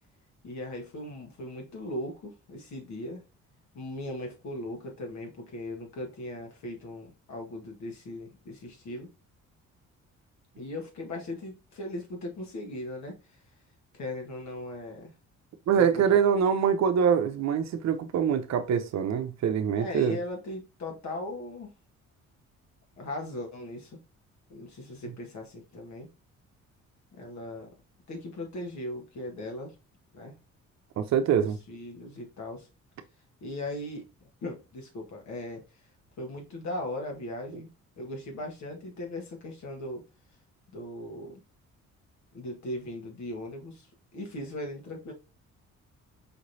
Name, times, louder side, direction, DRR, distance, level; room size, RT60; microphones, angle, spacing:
voice 1, 0.4-3.2 3.7-9.1 10.6-13.2 13.9-15.1 15.7-16.2 19.8-21.7 23.0-24.0 24.5-26.1 27.2-27.7 28.1-29.7 30.1-30.3 31.7-32.7 33.4-34.0 34.4-35.6 36.2-37.7 38.0-40.0 40.7-41.4 42.3-43.9 44.1-45.1, left 1 dB, 65° left, 1.6 m, -38 dB
voice 2, 15.7-20.2 31.0-31.6, right 7 dB, 60° right, 0.7 m, -24 dB
5.0 x 3.1 x 2.6 m
cardioid pair, 90°, 30 cm